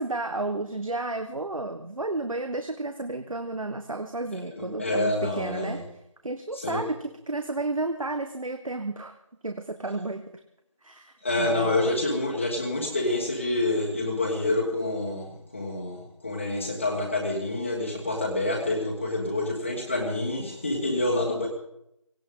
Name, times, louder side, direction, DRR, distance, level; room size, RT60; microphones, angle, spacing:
voice 1, 0.0-5.8 6.2-9.2 9.4-10.2 10.8-11.9, right 2 dB, 80° right, 7 dB, 1.4 m, -32 dB
voice 2, 4.3-5.8 6.5-6.8 11.2-21.5, left 2 dB, 20° left, -2 dB, 1.5 m, -27 dB
18.0 x 17.5 x 3.8 m, 0.80 s
figure-of-eight pair, 175°, 17 cm